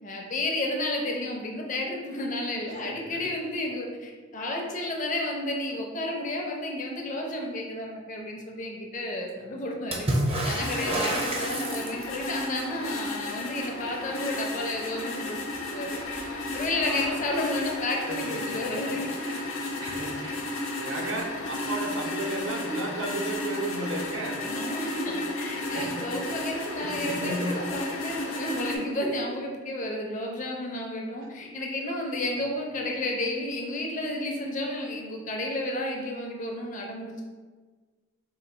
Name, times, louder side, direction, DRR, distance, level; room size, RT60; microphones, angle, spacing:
voice 1, 0.0-10.1 10.4-16.0 16.5-19.3 24.4-37.2, left 1 dB, 40° left, 0 dB, 0.6 m, -32 dB
voice 2, 2.6-3.2 11.0-11.2 16.8-17.5 18.1-19.5 19.8-20.4 20.8-24.4 24.8-25.2 25.5-26.4 26.7-27.6, right 2 dB, 65° right, 1 dB, 0.7 m, -35 dB
Water / Splash splatter, 9.9-12.3 15.6-15.7 15.9-16.7 17.8-17.9, right 1 dB, 25° right, 0.6 m, -29 dB
sound 1, 10.6-28.8, left 2 dB, 75° left, 0.7 m, -33 dB
3.8 x 2.4 x 4.2 m, 1.4 s
head